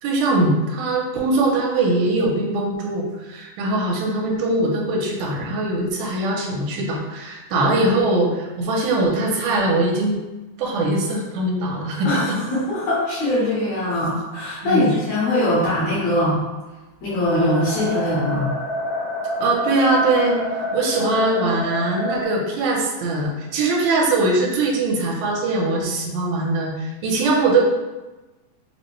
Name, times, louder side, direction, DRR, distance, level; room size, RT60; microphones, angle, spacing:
voice 1, 0.0-10.2 10.6-12.4 14.6-14.9 19.4-20.4 20.7-27.6, right 2 dB, 80° right, -2 dB, 2.2 m, -21 dB
voice 2, 12.1-16.4 17.0-18.5, left 1 dB, 70° left, -8 dB, 1.9 m, -22 dB
sound 1, 17.2-22.2, left 1 dB, 55° right, 1.7 m, -27 dB
5.0 x 2.1 x 3.0 m, 1.1 s
omnidirectional pair, 3.7 m